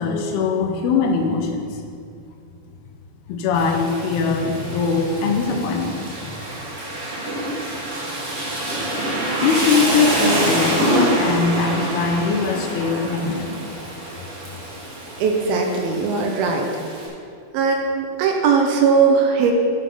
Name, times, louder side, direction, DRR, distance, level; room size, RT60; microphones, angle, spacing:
voice 1, 0.0-1.8 3.3-6.1 9.4-13.6, left 5 dB, 80° left, 3 dB, 2.7 m, -21 dB
Rain, 3.5-17.1, right 1 dB, 40° right, 1.1 m, -26 dB
voice 2, 15.2-16.7 17.5-19.5, right 5 dB, 75° right, 2 dB, 2.4 m, -19 dB
11.0 x 6.3 x 5.4 m, 2.4 s
omnidirectional pair, 4.8 m